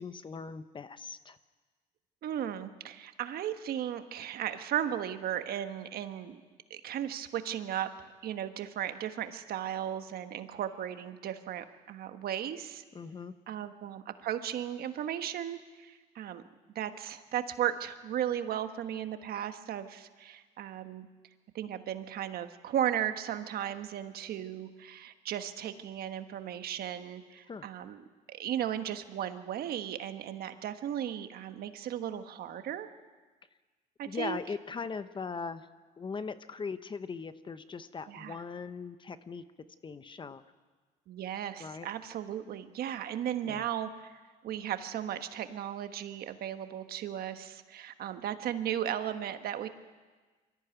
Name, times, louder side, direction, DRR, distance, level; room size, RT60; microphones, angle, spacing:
voice 1, 0.0-1.4 12.9-13.3 27.5-27.6 34.1-35.7 36.0-39.4 39.8-40.4 41.6-41.9 43.4-43.6, left 5 dB, 30° left, 12 dB, 0.9 m, -39 dB
voice 2, 2.2-6.4 6.7-12.8 13.5-16.4 16.7-21.1 21.5-32.9 34.0-34.4 38.1-38.4 41.1-49.7, right 10 dB, 65° right, 9 dB, 1.4 m, -36 dB
23.5 x 14.0 x 9.2 m, 1.4 s
cardioid pair, 110°, 17 cm